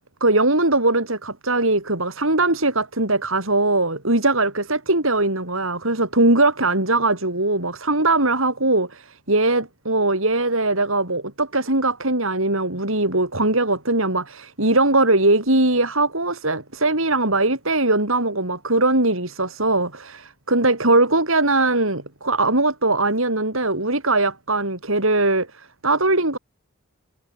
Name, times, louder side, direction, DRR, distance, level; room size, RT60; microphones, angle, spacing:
voice 1, 0.2-26.4, right 2 dB, 65° right, 6.3 m, -20 dB
head